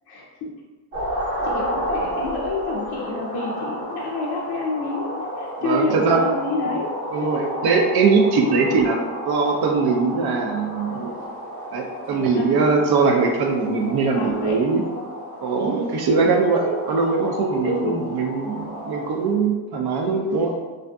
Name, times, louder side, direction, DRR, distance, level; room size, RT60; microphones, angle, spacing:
voice 1, 0.1-0.5 1.4-6.9 7.2-7.4 8.5-8.6 12.1-12.6 14.1-14.6 16.2-16.3 17.6-18.0, left 3 dB, 55° left, -3 dB, 0.5 m, -28 dB
sound 1, 0.9-19.3, equal, 85° right, 1.0 m, -32 dB
voice 2, 5.6-6.2 7.1-9.0 9.3-11.2 11.7-14.8 15.4-20.6, right 4 dB, 50° right, 2 dB, 0.5 m, -21 dB
2.5 x 2.5 x 2.2 m, 1.3 s
cardioid pair, 80°, 50 cm